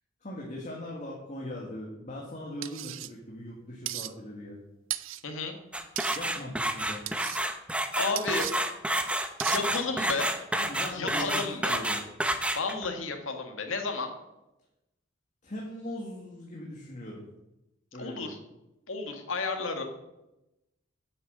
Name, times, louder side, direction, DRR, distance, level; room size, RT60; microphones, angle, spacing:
voice 1, 0.2-4.6 6.1-7.1 10.5-12.0 15.4-17.2 17.9-18.3, left 1 dB, 35° left, -2 dB, 1.9 m, -40 dB
sound 1, 2.6-3.1 3.9-4.1 4.9-5.2 6.0-6.2 7.1-7.4 8.2-8.5 9.4-9.6, right 15 dB, 70° right, 0.5 m, -35 dB
voice 2, 5.2-5.5 8.0-8.5 9.5-10.4 10.8-11.8 12.6-14.1 18.0-18.4 18.9-19.8, left 3 dB, 75° left, 4 dB, 1.8 m, -32 dB
sound 2, 5.7-12.9, right 1 dB, 5° right, 0.7 m, -29 dB
9.6 x 8.0 x 6.5 m, 0.94 s
head